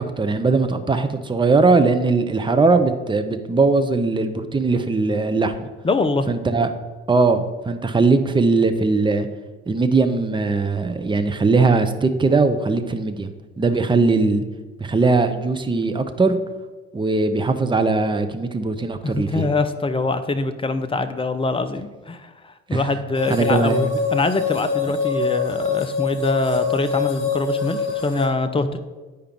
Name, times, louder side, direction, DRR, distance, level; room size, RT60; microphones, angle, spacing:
voice 1, 0.0-5.7 6.3-6.7 7.1-9.3 9.7-14.4 14.8-16.4 16.9-19.4 22.7-22.8 23.3-23.8, right 3 dB, 15° right, 8 dB, 0.8 m, -20 dB
voice 2, 5.8-6.3 19.0-28.8, left 3 dB, 15° left, 10 dB, 0.7 m, -24 dB
sound 1, 23.1-28.3, left 5 dB, 65° left, 1.7 m, -24 dB
9.3 x 5.0 x 4.6 m, 1.3 s
figure-of-eight pair, 50°, 33 cm